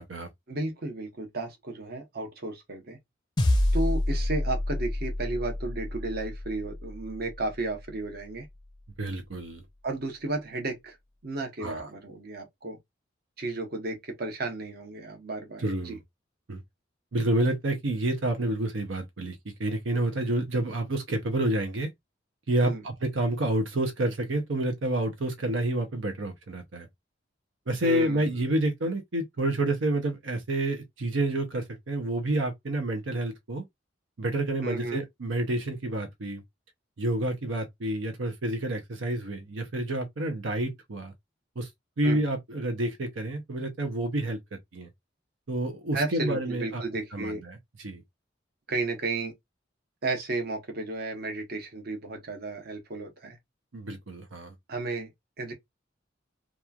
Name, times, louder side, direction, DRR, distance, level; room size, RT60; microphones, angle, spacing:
voice 1, 0.5-3.0 3.7-8.5 9.8-11.0 11.2-12.8 13.4-16.0 22.6-22.8 27.8-28.5 34.6-35.0 42.0-42.2 45.9-47.4 48.7-49.3 50.0-53.4 54.7-55.1 55.4-55.5, right 2 dB, 55° right, 0.9 m, -33 dB
sound 1, 3.4-7.9, left 1 dB, 25° left, 0.5 m, -28 dB
voice 2, 9.0-9.6 11.6-11.9 15.6-16.0 16.5-16.6 17.1-21.9 22.5-26.9 27.7-33.6 34.2-36.4 37.0-41.1 41.6-41.7 42.0-44.9 45.5-46.8 47.1-48.0 53.7-54.5, right 1 dB, 85° right, 0.7 m, -29 dB
2.9 x 2.3 x 2.3 m
head